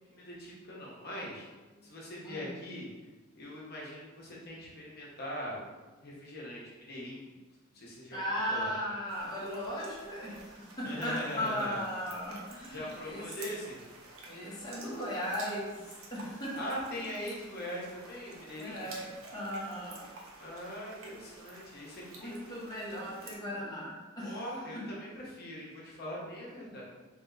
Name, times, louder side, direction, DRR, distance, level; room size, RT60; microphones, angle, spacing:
voice 1, 0.1-1.5 1.8-2.9 3.3-7.3 7.7-8.7 10.8-11.8 12.7-13.8 16.5-19.0 20.4-22.9 24.2-26.8, equal, 50° left, -4 dB, 1.1 m, -41 dB
voice 2, 8.1-13.3 14.2-15.8 16.1-16.6 18.6-20.1 22.1-24.4, equal, 20° left, -7 dB, 1.3 m, -37 dB
sound 1, 9.1-23.4, right 3 dB, 75° right, 0.7 m, -51 dB
3.5 x 3.2 x 3.9 m, 1.2 s
head